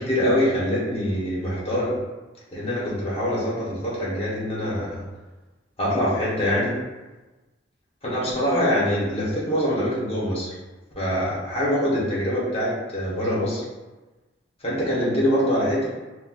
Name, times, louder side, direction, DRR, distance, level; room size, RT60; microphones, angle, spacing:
voice 1, 0.0-2.0 2.5-5.0 5.8-6.7 8.1-10.5 11.0-13.6 14.6-15.9, equal, 35° left, -7 dB, 1.1 m, -24 dB
4.2 x 2.2 x 2.4 m, 1.2 s
head